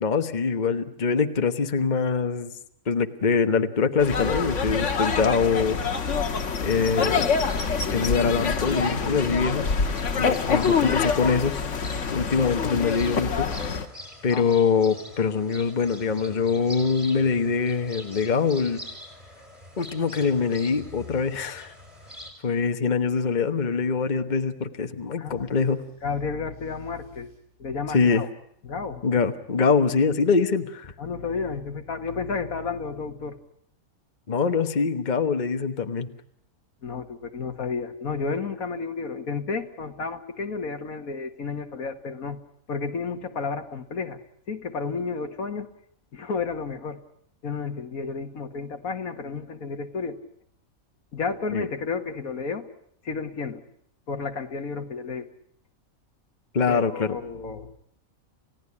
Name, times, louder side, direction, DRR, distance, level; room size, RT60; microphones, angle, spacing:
voice 1, 0.0-2.5 2.9-5.8 6.6-7.3 7.9-9.7 10.2-11.6 12.1-13.5 14.2-18.8 19.8-21.7 22.4-25.8 27.9-28.2 29.0-30.9 34.3-36.1 51.5-51.7 56.5-57.2, left 5 dB, 35° left, 8 dB, 1.3 m, -24 dB
sound 1, 4.0-13.9, left 5 dB, 55° left, 1.7 m, -26 dB
sound 2, 7.5-22.3, equal, 35° right, 5.2 m, -45 dB
voice 2, 10.4-11.1 14.3-14.4 25.2-25.4 26.0-27.3 27.6-28.3 28.6-29.0 31.0-33.4 36.8-42.4 42.7-44.2 44.5-45.7 46.1-47.0 47.4-50.2 51.1-52.7 53.0-53.6 54.1-55.3 56.7-57.7, left 4 dB, 75° left, 8 dB, 1.9 m, -32 dB
goma cae, 20.7-22.5 25.3-27.4, left 2 dB, 50° right, 8.3 m, -50 dB
29.5 x 17.0 x 9.7 m, 0.72 s
omnidirectional pair, 1.5 m